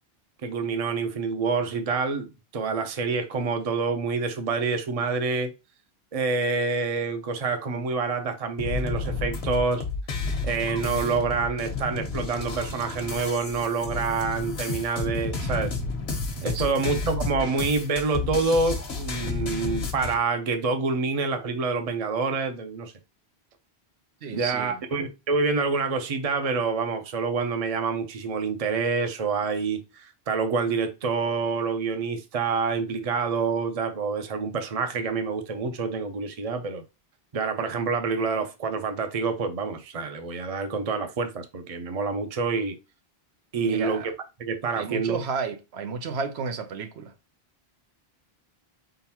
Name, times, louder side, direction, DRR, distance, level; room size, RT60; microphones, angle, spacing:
voice 1, 0.4-5.5 6.1-9.8 10.4-15.7 16.4-22.9 24.3-36.8 37.3-42.8 43.5-44.1 44.4-45.2, right 4 dB, 40° right, 0.7 m, -27 dB
sound 1, 8.6-20.1, left 4 dB, 75° left, 1.2 m, -31 dB
voice 2, 24.2-24.8 43.6-44.1 44.7-47.1, right 5 dB, 85° right, 1.0 m, -32 dB
4.5 x 3.8 x 2.8 m
omnidirectional pair, 1.1 m